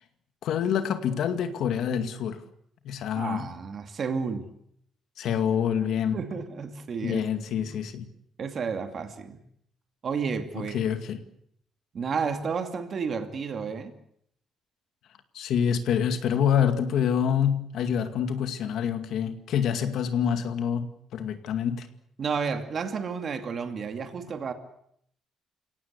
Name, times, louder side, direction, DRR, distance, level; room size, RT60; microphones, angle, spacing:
voice 1, 0.4-2.4 2.8-3.5 5.2-6.2 7.0-8.1 10.6-11.2 15.3-21.9, left 8 dB, 65° left, 8 dB, 2.2 m, -26 dB
voice 2, 3.2-4.4 6.1-7.2 7.6-7.7 8.4-9.4 10.0-10.8 11.9-13.9 22.2-24.5, right 5 dB, 35° right, 6 dB, 2.5 m, -31 dB
29.5 x 17.5 x 8.3 m, 0.71 s
cardioid pair, 170°, 0 cm